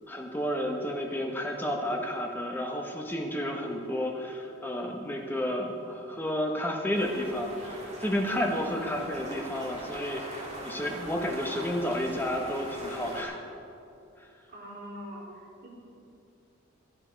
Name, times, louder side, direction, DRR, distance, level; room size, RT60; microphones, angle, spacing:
voice 1, 0.1-13.4 14.2-14.3, equal, 10° left, 1 dB, 1.2 m, -31 dB
sound 1, 6.9-13.2, right 1 dB, 35° right, 2.4 m, -41 dB
voice 2, 14.5-15.2 15.6-15.7, equal, 50° right, -5 dB, 3.5 m, -42 dB
12.0 x 11.5 x 5.2 m, 2.6 s
head